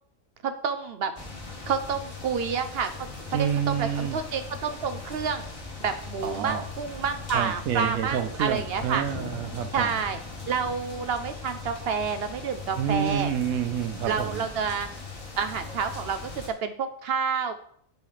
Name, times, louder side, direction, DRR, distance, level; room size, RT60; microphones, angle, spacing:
voice 1, 0.4-1.1 1.7-2.9 3.3-5.4 5.8-9.0 9.7-10.2 10.5-13.3 14.1-14.9 15.4-17.5, right 6 dB, 65° right, 8 dB, 0.6 m, -29 dB
sound 1, 1.2-16.5, left 4 dB, 25° left, 1.4 m, -39 dB
voice 2, 3.3-4.2 6.2-6.7 7.3-9.9 12.8-14.4, right 9 dB, 90° right, 8 dB, 1.1 m, -28 dB
7.4 x 3.2 x 5.6 m, 0.63 s
omnidirectional pair, 1.4 m